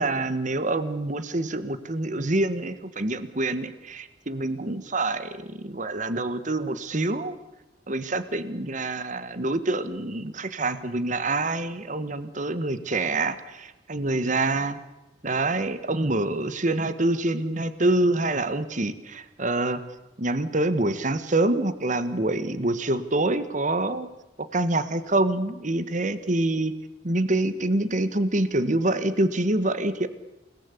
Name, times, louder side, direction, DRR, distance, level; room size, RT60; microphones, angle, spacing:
voice 1, 0.0-7.3 7.9-14.8 15.2-19.8 20.2-24.1 24.4-26.7 27.0-30.1, right 2 dB, 45° right, 12 dB, 1.4 m, -26 dB
28.5 x 18.5 x 8.4 m, 0.98 s
head